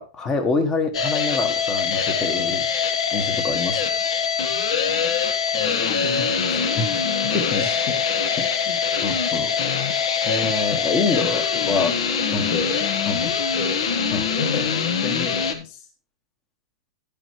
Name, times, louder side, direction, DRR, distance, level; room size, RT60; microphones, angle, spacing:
voice 1, 0.0-2.7 3.1-3.9 6.8-6.9 7.3-7.7 8.4-9.5 10.2-11.9 12.3-12.6 13.1-13.3 14.1-14.3, left 3 dB, 15° left, 9 dB, 1.3 m, -26 dB
sound 1, 0.9-15.5, left 6 dB, 60° left, 1.5 m, -23 dB
voice 2, 5.5-8.0 11.5-11.9 12.5-12.8 13.2-15.9, left 5 dB, 35° left, 5 dB, 2.0 m, -33 dB
10.5 x 10.0 x 3.1 m, 0.34 s
supercardioid pair, 170°, 3 cm